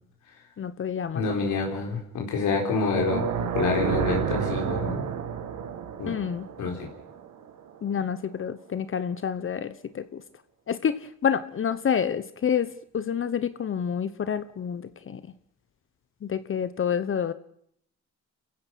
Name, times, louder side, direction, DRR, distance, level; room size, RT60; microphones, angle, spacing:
voice 1, 0.6-1.2 6.1-6.5 7.8-10.2 10.7-15.2 16.2-17.3, left 7 dB, 45° left, 13 dB, 1.0 m, -28 dB
voice 2, 1.1-5.1 6.0-6.1 6.6-6.9, left 4 dB, 80° left, -1 dB, 4.7 m, -27 dB
sound 1, 2.8-7.9, right 8 dB, 75° right, 2.3 m, -31 dB
28.0 x 15.5 x 6.2 m, 0.68 s
cardioid pair, 90°, 30 cm